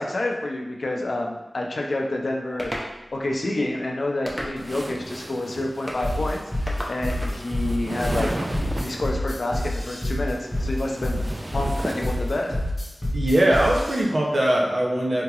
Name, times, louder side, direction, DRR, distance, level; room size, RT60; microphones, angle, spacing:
voice 1, 0.0-2.7 3.1-6.4 6.9-8.3 8.8-11.2 11.5-12.6, left 2 dB, 80° left, 0 dB, 0.5 m, -28 dB
sound 1, 2.6-2.9 4.3-4.8 5.9-6.1 6.7-7.4, equal, ahead, 0.6 m, -32 dB
sound 2, 4.6-9.2 10.2-12.7, right 1 dB, 40° right, 0.3 m, -35 dB
sound 3, 6.0-14.0, left 1 dB, 35° left, 0.8 m, -27 dB
voice 2, 13.1-15.2, right 1 dB, 70° right, -2 dB, 0.6 m, -21 dB
3.7 x 2.9 x 2.3 m, 1.0 s
wide cardioid pair, 60°, 0 cm